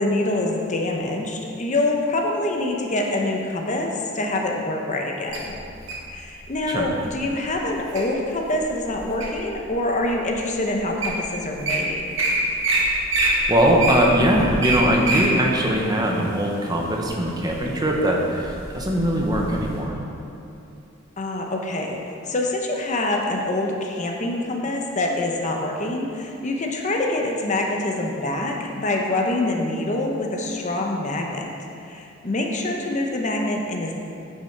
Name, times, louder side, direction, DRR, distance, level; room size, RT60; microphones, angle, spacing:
voice 1, 0.0-5.5 6.1-12.2 21.2-31.5 31.8-33.9, left 2 dB, 40° left, 1 dB, 0.8 m, -25 dB
Wild animals, 5.3-6.1 6.8-7.1 7.6-8.0 8.5-9.5 10.1-10.2 10.7-10.8 11.0-11.2 11.4-11.7 12.2-12.3 12.6-12.8 13.1-15.3 15.7-15.8, right 3 dB, 75° right, 1.8 m, -23 dB
sound 1, 12.3-19.8, equal, 65° left, 1.9 m, -38 dB
voice 2, 13.5-20.0, equal, 20° right, -1 dB, 0.9 m, -21 dB
9.5 x 5.8 x 4.6 m, 2.6 s
head